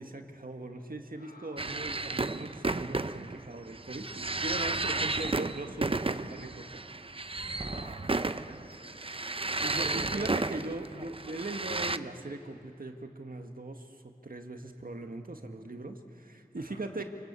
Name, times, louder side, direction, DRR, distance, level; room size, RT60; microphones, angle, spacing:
voice 1, 0.0-6.8 9.6-14.0 14.2-17.0, right 2 dB, 65° right, 5 dB, 1.9 m, -40 dB
voice 2, 1.1-2.3 7.6-10.1 16.5-16.8, left 1 dB, 75° left, 0 dB, 6.0 m, -56 dB
sound 1, 1.6-12.0, right 3 dB, 35° right, 0.7 m, -33 dB
28.5 x 19.5 x 8.4 m, 2.9 s
wide cardioid pair, 40°, 16 cm